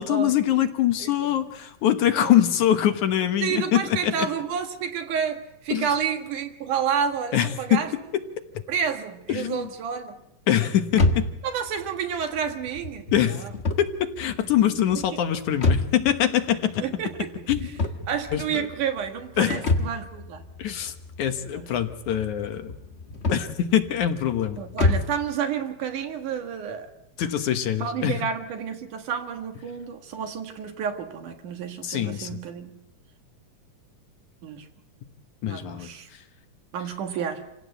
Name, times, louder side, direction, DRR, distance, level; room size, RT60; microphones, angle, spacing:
voice 1, 0.0-4.3 5.7-5.9 7.3-7.8 8.1-8.2 8.5-8.6 9.3-9.7 10.5-11.3 13.1-13.4 13.8-16.8 17.5-17.7 18.3-18.7 19.4-19.6 20.6-22.8 23.3-24.6 24.9-25.0 27.2-28.2 31.8-32.4 35.4-36.2, left 11 dB, 70° left, 8 dB, 2.5 m, -24 dB
voice 2, 3.4-7.9 8.7-10.2 11.4-13.1 14.8-15.0 16.8-17.3 18.1-20.4 21.5-21.7 24.6-26.9 27.8-32.8 34.4-34.7 35.5-36.1 36.7-37.5, right 7 dB, 70° right, 6 dB, 3.1 m, -30 dB
sound 1, 10.9-25.3, left 2 dB, 85° left, 0.5 m, -29 dB
28.0 x 16.5 x 8.1 m, 0.88 s
omnidirectional pair, 3.8 m